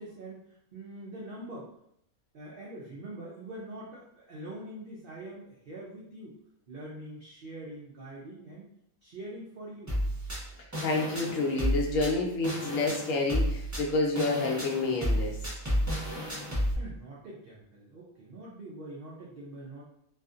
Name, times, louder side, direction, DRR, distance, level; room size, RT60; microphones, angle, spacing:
voice 1, 0.0-1.7 2.3-6.3 6.7-8.7 9.0-9.9 16.7-19.8, right 1 dB, 75° right, -4 dB, 0.5 m, -44 dB
sound 1, 9.9-16.7, equal, 15° right, 0.6 m, -31 dB
voice 2, 10.8-15.3, left 3 dB, 70° left, -1 dB, 0.9 m, -29 dB
2.6 x 2.4 x 2.4 m, 0.74 s
omnidirectional pair, 1.5 m